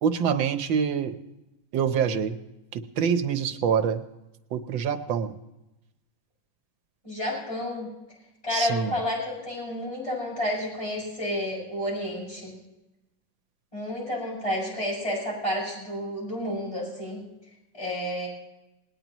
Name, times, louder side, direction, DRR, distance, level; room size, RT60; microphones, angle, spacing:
voice 1, 0.0-1.1 1.7-2.4 2.7-4.0 4.5-5.3 8.5-8.9, right 7 dB, 85° right, 9 dB, 1.7 m, -25 dB
voice 2, 7.0-7.9 8.4-12.6 13.7-17.2 17.7-18.3, left 1 dB, 15° left, -3 dB, 6.9 m, -30 dB
19.5 x 19.0 x 3.0 m, 0.97 s
omnidirectional pair, 2.1 m